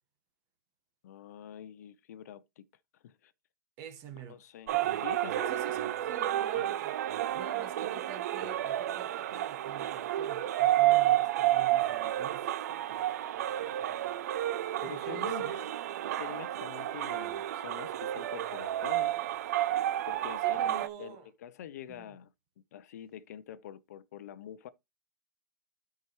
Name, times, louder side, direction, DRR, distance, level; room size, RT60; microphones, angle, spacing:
voice 1, 1.0-2.6 3.0-3.3 4.2-4.7 5.0-5.5 6.5-6.7 14.8-15.7 16.0-19.2 20.1-22.3 22.7-24.7, left 10 dB, 60° left, 0.5 m, -46 dB
voice 2, 3.8-4.4 4.7-5.1 5.5-7.0 7.3-12.5 14.8-15.6 20.4-21.3 22.0-22.2, right 6 dB, 30° right, 1.2 m, -47 dB
sound 1, 4.7-20.9, right 13 dB, 60° right, 0.5 m, -30 dB
12.5 x 4.7 x 3.0 m
supercardioid pair, 165°, 10 cm